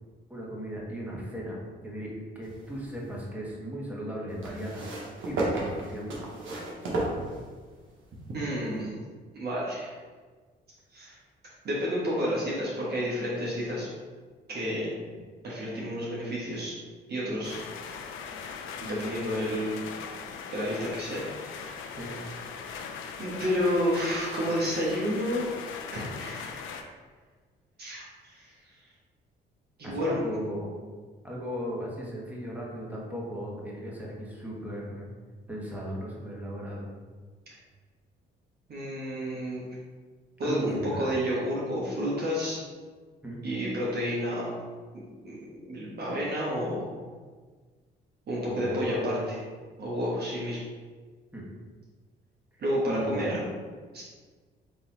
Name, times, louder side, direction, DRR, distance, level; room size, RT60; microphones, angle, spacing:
voice 1, 0.3-1.6 1.8-4.8 5.3-6.2 22.0-22.1 29.8-30.7 31.2-35.1 35.5-36.9 40.4-41.2 43.2-43.4 48.5-49.3 51.3-51.4 52.9-53.4, equal, 10° right, -4 dB, 1.3 m, -36 dB
sound 1, 2.4-3.3 4.4-7.8 8.8-8.9, right 2 dB, 80° right, 1.1 m, -33 dB
voice 2, 8.3-8.9 9.3-10.0 10.9-11.1 11.6-13.9 14.5-14.9 15.4-16.8 17.1-17.6 18.8-19.9 20.5-22.2 23.2-25.5 25.9-26.8 27.8-28.5 29.8-30.2 38.7-39.6 40.4-42.6 43.4-44.5 44.9-47.0 48.3-49.2 49.8-50.6 52.6-53.4 53.9-54.0, equal, 55° right, -6 dB, 1.2 m, -30 dB
sound 2, 17.4-26.8, left 6 dB, 85° left, 0.4 m, -40 dB
4.0 x 2.9 x 3.9 m, 1.5 s
cardioid pair, 90°, 20 cm